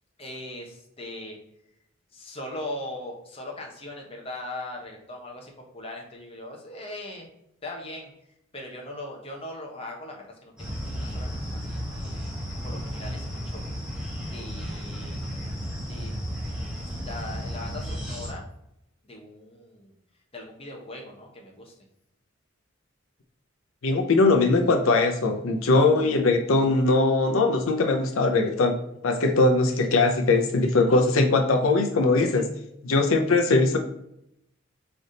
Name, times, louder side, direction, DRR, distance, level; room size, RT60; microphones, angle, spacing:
voice 1, 0.2-1.4 2.1-7.3 7.6-8.1 8.5-12.3 12.6-13.6 14.3-15.2 15.9-16.2 16.9-18.4 19.0-19.9 20.3-21.7, left 1 dB, 30° left, 0 dB, 1.0 m, -39 dB
sound 1, 10.6-18.3, equal, 5° right, 1.3 m, -33 dB
voice 2, 23.8-28.8 29.0-32.5 32.8-33.8, left 3 dB, 80° left, 4 dB, 0.6 m, -21 dB
4.0 x 3.4 x 3.9 m, 0.79 s
head